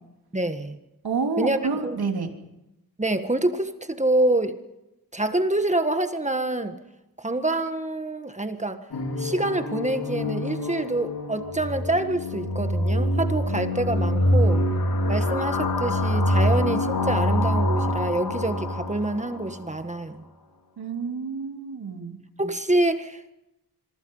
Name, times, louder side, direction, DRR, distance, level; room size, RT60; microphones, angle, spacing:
voice 1, 0.3-0.8 1.4-2.0 3.0-4.6 5.1-6.7 7.2-8.8 9.2-14.6 15.1-20.2 22.4-23.3, right 2 dB, 20° right, 8 dB, 1.5 m, -26 dB
voice 2, 1.0-2.3 20.8-22.2, right 4 dB, 80° right, 3 dB, 3.3 m, -28 dB
sound 1, 8.9-19.7, left 1 dB, 75° left, 3.2 m, -25 dB
26.0 x 23.0 x 5.6 m, 0.93 s
wide cardioid pair, 110°, 37 cm